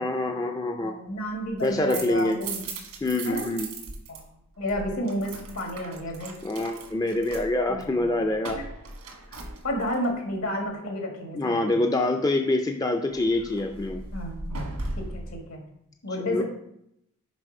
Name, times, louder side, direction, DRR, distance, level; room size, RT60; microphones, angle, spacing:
voice 1, 0.0-0.9 1.6-2.4 3.0-3.7 6.4-8.6 11.3-14.0 16.3-16.4, left 2 dB, 15° left, 5 dB, 0.4 m, -25 dB
voice 2, 0.8-2.7 3.3-3.5 4.1-4.2 4.6-6.4 7.7-8.6 9.6-11.8 14.1-15.6 16.0-16.4, equal, 75° left, 2 dB, 1.8 m, -32 dB
sound 1, 1.4-4.2 4.5-10.1 13.1-15.3, right 2 dB, 85° right, 1.4 m, -38 dB
6.1 x 5.1 x 5.3 m, 0.78 s
head